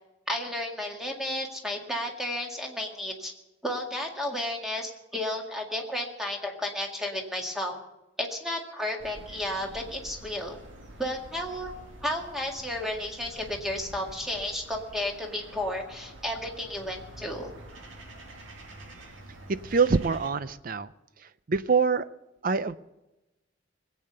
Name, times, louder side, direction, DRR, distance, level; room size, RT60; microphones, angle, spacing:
voice 1, 0.3-3.3 3.6-7.8 8.2-10.6 11.0-11.7 12.0-17.5, left 1 dB, ahead, 1 dB, 2.0 m, -32 dB
sound 1, 9.0-20.3, right 1 dB, 85° right, 2.2 m, -47 dB
voice 2, 19.5-20.9 21.5-22.1 22.4-22.8, right 5 dB, 45° right, 14 dB, 0.5 m, -25 dB
21.0 x 8.6 x 6.7 m, 0.98 s
head